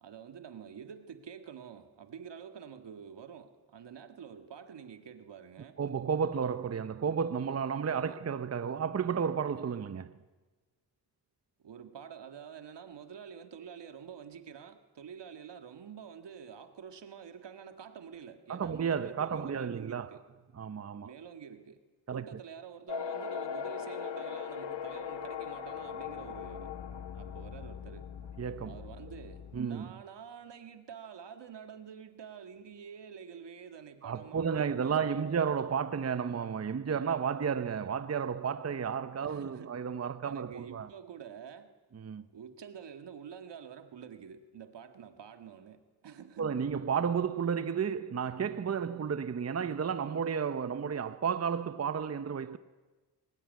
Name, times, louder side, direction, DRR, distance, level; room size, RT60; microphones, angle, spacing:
voice 1, 0.0-5.8 7.9-8.2 11.6-20.2 21.0-21.8 22.1-26.7 27.1-28.1 28.6-35.5 39.2-39.8 40.2-41.7 42.3-46.6, right 7 dB, 85° right, 1.9 m, -48 dB
voice 2, 5.8-10.2 18.5-20.2 20.5-21.1 22.1-22.2 28.4-28.8 29.5-29.9 34.0-40.9 41.9-42.3 46.4-52.6, right 7 dB, 35° right, 0.8 m, -32 dB
sound 1, 22.9-29.6, left 7 dB, 85° left, 1.5 m, -40 dB
24.0 x 19.0 x 9.4 m
wide cardioid pair, 95°, 41 cm